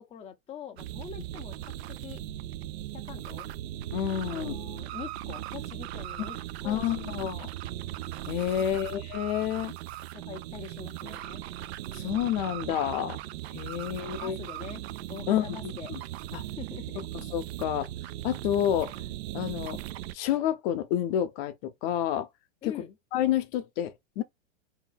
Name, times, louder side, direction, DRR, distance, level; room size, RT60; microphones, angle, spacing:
voice 1, 0.0-1.6 2.0-2.2 2.9-3.5 4.3-7.2 8.6-8.9 10.1-11.4 13.7-14.8 15.1-15.9 16.4-17.1 22.6-22.9, left 7 dB, 15° left, 0.6 m, -44 dB
sound 1, 0.8-20.2, right 13 dB, 55° right, 0.5 m, -38 dB
voice 2, 3.9-4.6 6.6-7.5 8.3-9.7 11.9-13.2 13.5-14.4 15.3-15.6 15.9-16.0 16.3-16.4 17.3-17.9 18.2-19.0 19.3-19.8 20.1-22.3 22.6-22.7 23.1-24.2, left 11 dB, 45° left, 0.8 m, -29 dB
4.0 x 2.8 x 3.8 m
hypercardioid pair, 105°, 38 cm